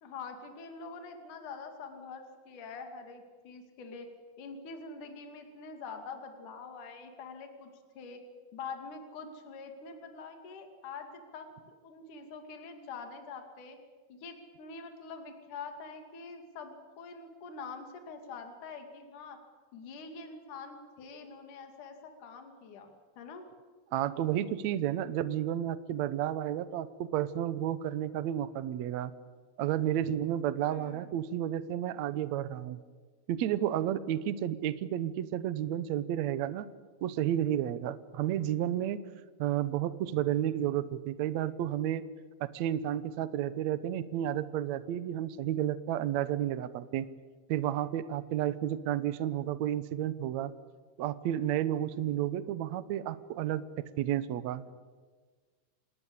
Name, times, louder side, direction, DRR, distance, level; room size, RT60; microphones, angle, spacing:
voice 1, 0.0-4.1 4.4-7.7 8.0-8.2 8.5-13.8 14.1-19.4 19.7-22.9 23.2-23.5 30.7-31.1, left 4 dB, 55° left, 5 dB, 3.7 m, -45 dB
voice 2, 23.9-29.1 29.6-32.8 33.3-36.7 37.0-39.0 39.4-42.0 42.4-47.1 47.5-50.5 51.0-53.6 54.0-54.7, right 11 dB, 75° right, 14 dB, 1.6 m, -31 dB
27.5 x 20.0 x 8.4 m, 1.4 s
omnidirectional pair, 4.4 m